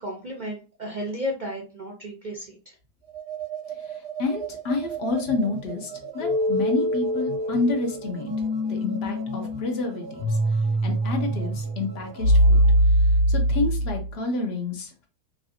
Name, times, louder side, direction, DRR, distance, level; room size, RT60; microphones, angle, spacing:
voice 1, 0.0-2.7, equal, 85° right, 0 dB, 0.4 m, -33 dB
sound 1, 3.0-12.8, right 7 dB, 55° right, 1.4 m, -39 dB
voice 2, 3.8-15.1, left 3 dB, 55° left, 3 dB, 0.7 m, -30 dB
sound 2, 6.2-14.1, equal, 85° left, 1.3 m, -23 dB
3.1 x 2.6 x 2.7 m, 0.35 s
omnidirectional pair, 1.7 m